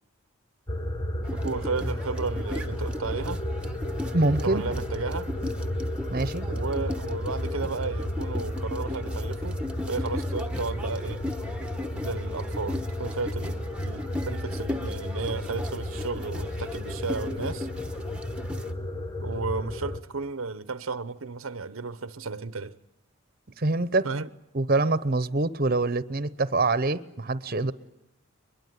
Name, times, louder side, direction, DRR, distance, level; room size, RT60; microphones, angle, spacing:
sound 1, 0.7-20.0, left 1 dB, 20° left, 1.0 m, -33 dB
sound 2, 1.2-18.7, left 1 dB, 5° right, 1.1 m, -38 dB
voice 1, 1.3-3.4 4.4-5.3 6.4-9.6 9.9-11.2 12.0-17.7 19.2-22.8 24.0-24.3, right 4 dB, 75° right, 0.8 m, -33 dB
voice 2, 4.1-4.6 6.1-6.4 23.6-24.1 24.5-27.7, right 2 dB, 45° right, 0.9 m, -25 dB
22.5 x 22.0 x 9.4 m
head